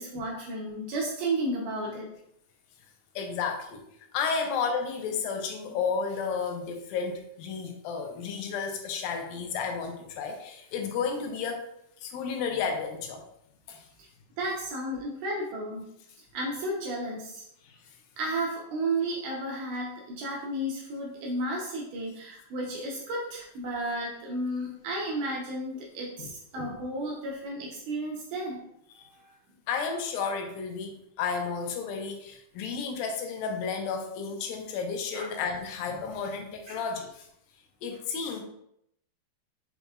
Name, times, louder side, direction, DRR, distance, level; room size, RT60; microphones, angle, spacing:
voice 1, 0.0-2.1 14.0-14.1 14.4-15.9 16.3-17.4 18.2-28.6 29.0-29.3 35.1-35.3 36.7-36.8, right 1 dB, 75° right, -2 dB, 2.0 m, -33 dB
voice 2, 3.2-3.8 4.1-11.7 12.0-13.2 13.7-13.9 17.6-17.8 26.2-26.3 26.6-26.7 28.9-29.1 29.7-37.3 37.8-38.4, left 5 dB, 80° left, 3 dB, 2.4 m, -32 dB
5.6 x 4.0 x 2.3 m, 0.75 s
omnidirectional pair, 4.2 m